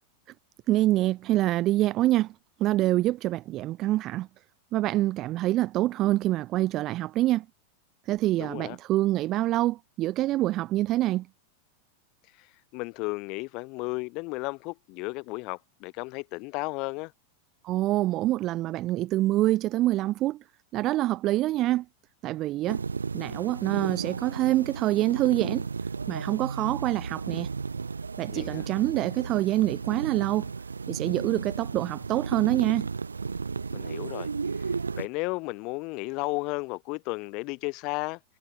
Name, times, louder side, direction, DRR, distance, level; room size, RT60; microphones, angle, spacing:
voice 1, 0.7-2.3 2.6-4.3 4.7-7.4 8.1-11.3 17.6-20.4 20.7-21.8 22.2-22.8 23.1-25.7 26.1-27.5 28.2-30.5 30.9-32.9, right 15 dB, 35° right, 1.4 m, -26 dB
voice 2, 8.4-8.8 12.3-17.1 28.3-28.7 33.7-34.3 34.6-38.2, left 27 dB, 40° left, 4.6 m, -34 dB
sound 1, 22.7-35.1, right 4 dB, 75° right, 1.7 m, -34 dB
figure-of-eight pair, 90°, 0 cm